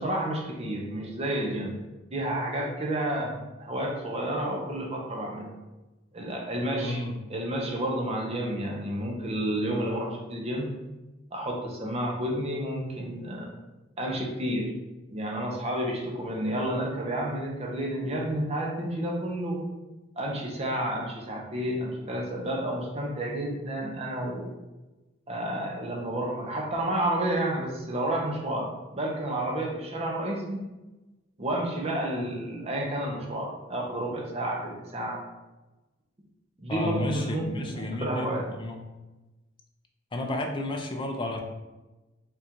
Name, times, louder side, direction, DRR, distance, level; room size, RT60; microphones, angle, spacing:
voice 1, 0.0-1.8 2.1-5.6 6.1-7.0 7.3-10.7 11.3-13.5 14.0-14.7 15.1-19.6 20.2-24.6 25.3-30.6 31.4-35.2 36.6-38.4, right 1 dB, 30° right, 0 dB, 0.7 m, -30 dB
voice 2, 6.8-7.2 36.7-38.8 40.1-41.4, left 1 dB, 25° left, 3 dB, 0.5 m, -32 dB
3.7 x 2.5 x 4.3 m, 1.1 s
head